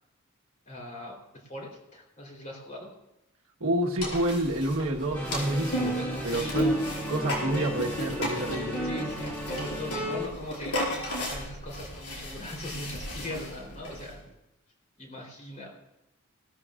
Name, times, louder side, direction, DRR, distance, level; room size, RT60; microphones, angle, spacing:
voice 1, 0.7-1.2 1.5-2.9 5.7-6.9 8.8-14.2 15.0-15.8, left 1 dB, 35° left, -1 dB, 3.6 m, -40 dB
voice 2, 3.6-6.0 6.2-6.7 7.1-8.8, right 1 dB, 65° right, 1 dB, 1.4 m, -28 dB
sound 1, 4.0-14.1, equal, 80° left, 5.1 m, -33 dB
sound 2, 5.1-10.3, equal, 10° left, 1.9 m, -36 dB
18.0 x 13.5 x 2.5 m, 0.91 s
head